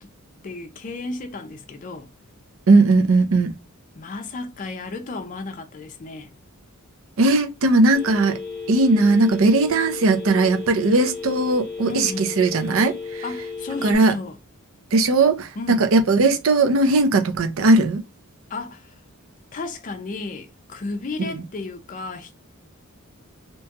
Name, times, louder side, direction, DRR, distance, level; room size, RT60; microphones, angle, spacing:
voice 1, 0.4-2.1 3.9-6.3 11.9-12.3 13.2-14.4 15.6-15.9 18.5-19.0 19.5-22.3, left 3 dB, 35° left, 0.4 m, -33 dB
voice 2, 2.7-3.5 7.2-8.4 8.7-13.2 13.8-14.1 14.9-18.0 21.3-21.4, right 3 dB, 65° right, 0.5 m, -18 dB
Telephone, 7.9-14.0, left 5 dB, 5° left, 1.0 m, -34 dB
2.9 x 2.3 x 2.8 m
head